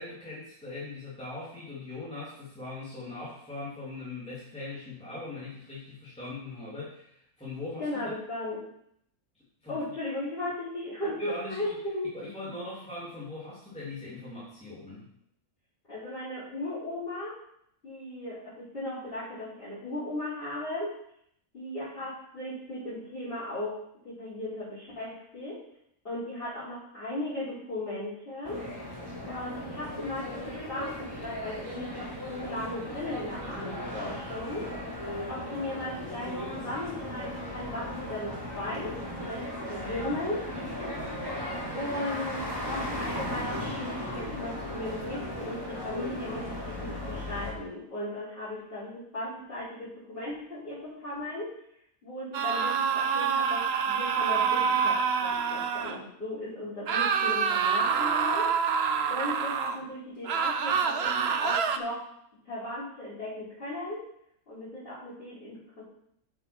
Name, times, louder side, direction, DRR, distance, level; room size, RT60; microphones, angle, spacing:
voice 1, 0.0-7.9 9.3-9.8 11.2-11.8 12.1-15.1, left 2 dB, 5° left, -8 dB, 2.9 m, -40 dB
voice 2, 7.8-8.6 9.7-12.1 15.9-17.4 17.8-21.0 21.5-25.6 26.0-28.7 29.3-35.0 35.3-40.5 41.7-51.5 52.0-58.5 59.1-62.0 62.4-64.0 64.5-65.8, left 1 dB, 40° left, -14 dB, 5.2 m, -36 dB
sound 1, 28.4-47.5, left 1 dB, 15° right, 2.9 m, -36 dB
sound 2, 52.3-56.0 56.9-59.8 60.2-61.8, right 6 dB, 55° right, 0.9 m, -27 dB
8.7 x 6.8 x 5.9 m, 0.72 s
omnidirectional pair, 1.5 m